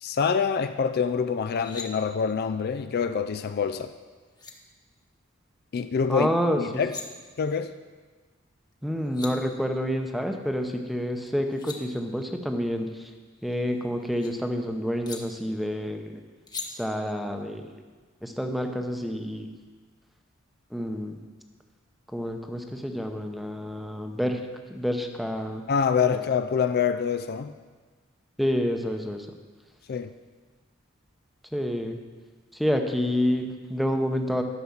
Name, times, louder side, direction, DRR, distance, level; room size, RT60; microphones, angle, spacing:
voice 1, 0.0-3.9 5.7-6.3 6.6-7.0 7.4-7.7 25.7-27.5 29.9-30.1, left 6 dB, 50° left, 9 dB, 0.4 m, -26 dB
sound 1, 1.4-1.9 3.9-4.0 4.3-4.5 6.6-7.0 8.7-8.8 9.0-9.3 11.3-11.8 13.3-14.3 15.0-15.2 16.5-16.7, left 4 dB, 20° left, 1.1 m, -40 dB
voice 2, 6.1-6.6 8.8-13.1 13.4-16.2 16.7-17.7 18.2-19.5 20.7-21.2 22.1-24.4 24.7-25.6 26.1-26.2 28.4-29.3 31.5-32.0 32.5-34.4, equal, ahead, 5 dB, 0.8 m, -28 dB
11.5 x 5.9 x 7.2 m, 1.4 s
head